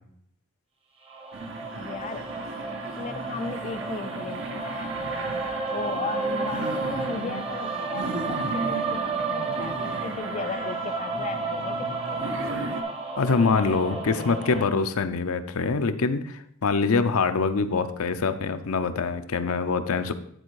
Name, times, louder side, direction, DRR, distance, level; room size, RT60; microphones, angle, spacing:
sound 1, 1.1-14.6, right 4 dB, 25° right, 0.9 m, -32 dB
sound 2, 1.3-12.8, right 2 dB, 60° right, 0.9 m, -36 dB
voice 1, 1.8-2.3 3.0-5.2 5.7-12.8 13.4-14.7, left 5 dB, 30° left, 8 dB, 0.4 m, -36 dB
voice 2, 13.2-20.1, left 4 dB, 75° left, 9 dB, 0.6 m, -24 dB
9.9 x 4.3 x 4.7 m, 0.71 s
head